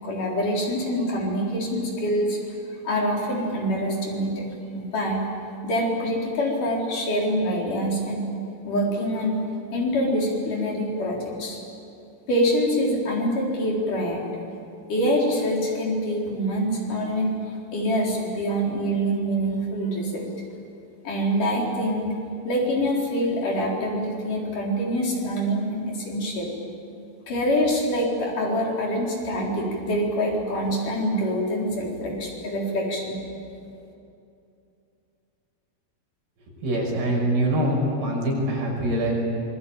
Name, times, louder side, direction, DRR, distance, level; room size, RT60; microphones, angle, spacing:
voice 1, 0.0-2.4 2.8-4.5 4.7-5.2 5.6-8.3 8.6-9.4 9.7-11.6 12.3-14.2 14.9-17.3 17.7-20.3 21.0-22.1 22.4-26.5 27.3-33.2, equal, 50° left, -2 dB, 5.4 m, -25 dB
voice 2, 36.5-39.1, right 1 dB, 70° right, -1 dB, 7.9 m, -24 dB
26.0 x 22.5 x 8.8 m, 2.6 s
omnidirectional pair, 4.7 m